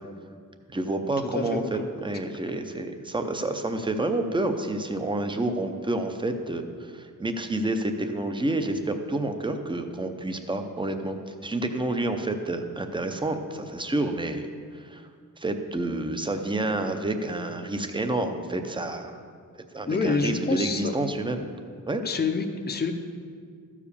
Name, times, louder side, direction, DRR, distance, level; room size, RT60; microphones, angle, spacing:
voice 1, 0.7-14.5 14.7-15.1 15.4-19.2 19.6-21.5 21.9-22.0, right 2 dB, 15° right, 7 dB, 0.6 m, -29 dB
voice 2, 1.3-1.9 19.9-20.9 22.0-22.9, left 4 dB, 30° left, 5 dB, 0.6 m, -27 dB
13.5 x 4.9 x 6.8 m, 2.1 s
wide cardioid pair, 160°, 33 cm